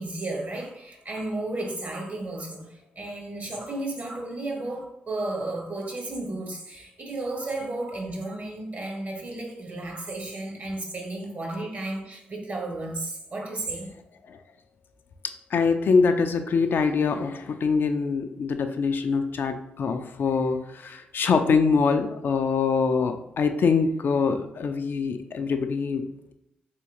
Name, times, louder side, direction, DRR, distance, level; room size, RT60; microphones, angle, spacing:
voice 1, 0.0-13.9, right 2 dB, 45° right, 0 dB, 1.2 m, -33 dB
voice 2, 15.5-26.0, left 5 dB, 60° left, 7 dB, 0.3 m, -24 dB
3.5 x 3.0 x 2.9 m, 0.82 s
supercardioid pair, 45°, 4 cm